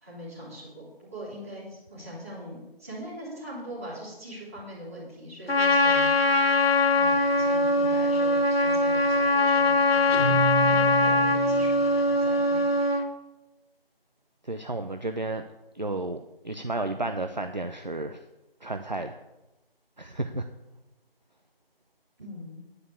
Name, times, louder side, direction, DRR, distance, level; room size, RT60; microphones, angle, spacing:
voice 1, 0.0-6.3 6.9-10.1 10.6-12.7 22.2-22.6, equal, 15° right, -10 dB, 3.0 m, -41 dB
Trumpet, 5.5-13.1, left 2 dB, 80° left, 1.6 m, -22 dB
Guitar, 10.1-11.8, right 7 dB, 65° right, 2.6 m, -30 dB
voice 2, 14.4-15.4 15.7-18.2 18.6-19.2 20.0-20.5, right 2 dB, 45° right, 7 dB, 0.6 m, -32 dB
9.7 x 5.3 x 8.2 m, 0.98 s
figure-of-eight pair, 175°, 30 cm